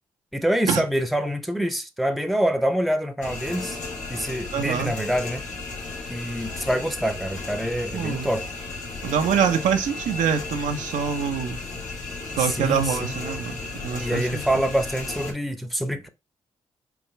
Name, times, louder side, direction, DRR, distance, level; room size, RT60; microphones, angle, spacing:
voice 1, 0.3-3.8 4.1-5.4 6.1-8.4 12.3-13.1 14.0-16.1, equal, ahead, 0.7 m, -26 dB
sound 1, 3.2-15.3, left 3 dB, 75° left, 1.1 m, -34 dB
voice 2, 4.5-4.9 7.9-8.3 9.0-11.6 12.4-14.4, right 7 dB, 80° right, 0.6 m, -25 dB
4.7 x 2.5 x 3.2 m
supercardioid pair, 50°, 13 cm